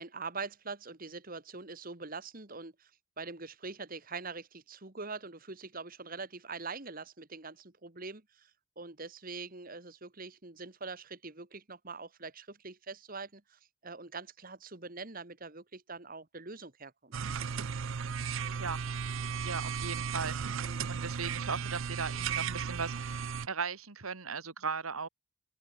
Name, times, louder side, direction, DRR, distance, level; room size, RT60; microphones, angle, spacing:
voice 1, 0.0-2.9 3.2-8.5 8.8-17.2 20.6-20.9, right 4 dB, 40° right, 1.9 m, -43 dB
sound 1, 17.1-23.5, right 6 dB, 65° right, 0.5 m, -35 dB
voice 2, 19.4-20.4 20.9-25.1, right 5 dB, 85° right, 2.0 m, -37 dB
open air
head